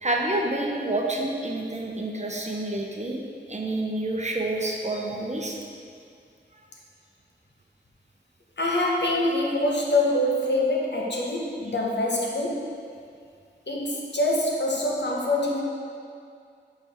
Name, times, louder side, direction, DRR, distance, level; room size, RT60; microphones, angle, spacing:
voice 1, 0.0-3.2 3.5-5.6, right 2 dB, 35° right, 0 dB, 0.7 m, -28 dB
voice 2, 8.6-12.7 13.7-15.6, left 1 dB, 65° left, -2 dB, 1.0 m, -25 dB
7.1 x 4.4 x 3.6 m, 2.3 s
wide cardioid pair, 55°, 19 cm